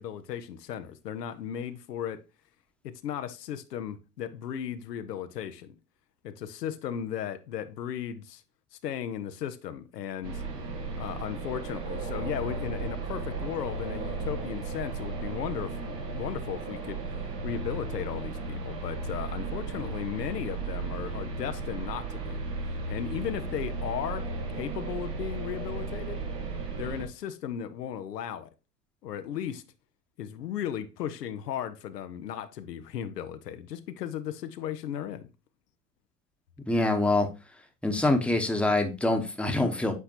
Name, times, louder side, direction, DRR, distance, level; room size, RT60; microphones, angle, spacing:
voice 1, 0.0-2.2 2.8-5.8 6.2-8.4 8.7-10.4 10.9-17.0 17.4-22.4 22.9-24.3 24.5-26.2 26.8-28.5 29.0-29.6 30.2-35.3, left 9 dB, 85° left, 0.6 m, -36 dB
sound 1, 10.2-27.0, right 3 dB, 80° right, 1.3 m, -35 dB
voice 2, 36.7-37.3 37.8-39.9, left 2 dB, ahead, 0.9 m, -25 dB
8.1 x 4.3 x 2.8 m
hypercardioid pair, 70°, 47 cm